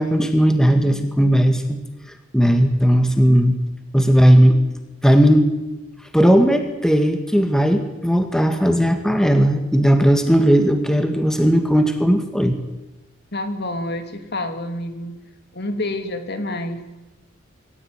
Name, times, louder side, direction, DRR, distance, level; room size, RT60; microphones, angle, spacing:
voice 1, 0.0-1.8 2.3-3.6 3.9-4.6 5.0-5.5 6.1-12.6, equal, 5° left, 6 dB, 1.8 m, -16 dB
voice 2, 13.3-15.2 15.5-16.8, left 1 dB, 55° left, 7 dB, 2.9 m, -28 dB
25.0 x 15.0 x 9.6 m, 1.0 s
head